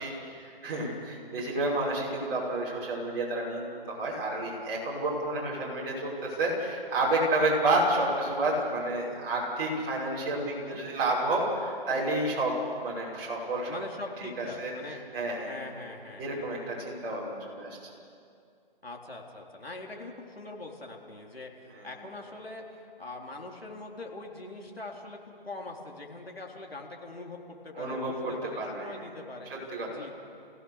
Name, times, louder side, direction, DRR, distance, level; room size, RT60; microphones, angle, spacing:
voice 1, 0.0-12.6 12.8-13.8 14.4-14.7 15.1-15.6 16.2-17.8 21.7-21.9 27.7-28.9 29.5-30.0, right 2 dB, 25° right, -5 dB, 6.0 m, -30 dB
voice 2, 10.4-10.9 13.7-15.0 15.5-16.5 18.8-27.4 27.6-29.5 29.9-30.1, left 2 dB, 85° left, 0 dB, 4.0 m, -42 dB
29.0 x 17.0 x 6.7 m, 2.4 s
figure-of-eight pair, 145°, 29 cm